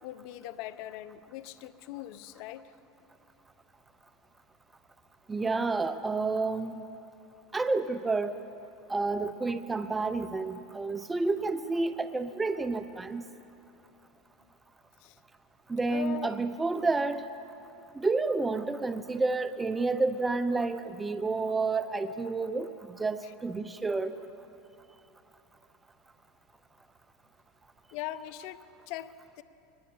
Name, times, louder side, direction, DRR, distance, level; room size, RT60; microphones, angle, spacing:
voice 1, 0.0-2.6 15.0-15.2 15.9-16.4 23.2-23.3 27.9-29.4, left 13 dB, 65° left, 15 dB, 0.9 m, -41 dB
voice 2, 5.3-6.8 7.5-8.4 8.9-13.2 15.7-17.2 17.9-24.2, right 3 dB, 15° right, 11 dB, 0.8 m, -30 dB
22.5 x 20.0 x 8.6 m, 2.9 s
supercardioid pair, 105°, 0 cm